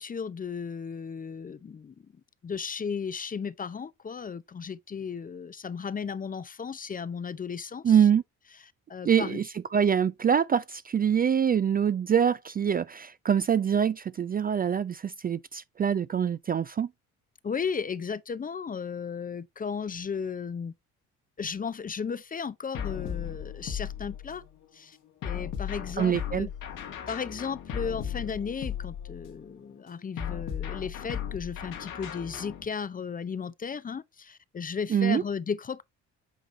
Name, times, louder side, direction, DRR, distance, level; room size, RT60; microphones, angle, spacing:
voice 1, 0.0-1.9 2.4-8.1 8.9-9.4 17.4-20.7 21.4-24.4 24.7-25.0 25.2-26.5 27.1-35.8, left 6 dB, 25° left, 0.5 m, -35 dB
voice 2, 7.8-8.2 9.1-9.4 9.7-16.9 26.0-26.5 34.9-35.2, right 8 dB, 30° right, 0.4 m, -24 dB
sound 1, 22.7-24.5 25.2-29.4 30.2-32.6, left 9 dB, 75° left, 2.0 m, -36 dB
8.2 x 3.7 x 3.2 m
supercardioid pair, 75°, 32 cm